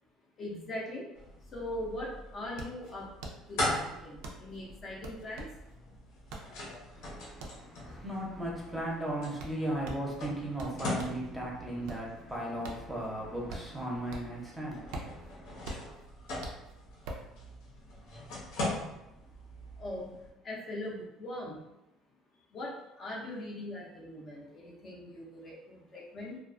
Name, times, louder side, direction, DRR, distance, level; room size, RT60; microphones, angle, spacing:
voice 1, 0.4-1.1 1.4-3.1 3.5-5.6 19.8-20.1 20.4-21.6 22.5-26.4, left 1 dB, 40° left, -3 dB, 0.5 m, -41 dB
sound 1, 1.1-20.3, left 1 dB, 85° left, 0.9 m, -41 dB
sound 2, 2.5-11.3 11.7-14.5 14.7-17.3, right 2 dB, 80° right, 0.4 m, -45 dB
voice 2, 6.9-15.8, right 1 dB, 10° right, -4 dB, 0.6 m, -37 dB
2.3 x 2.3 x 2.4 m, 0.92 s
cardioid pair, 125°, 0 cm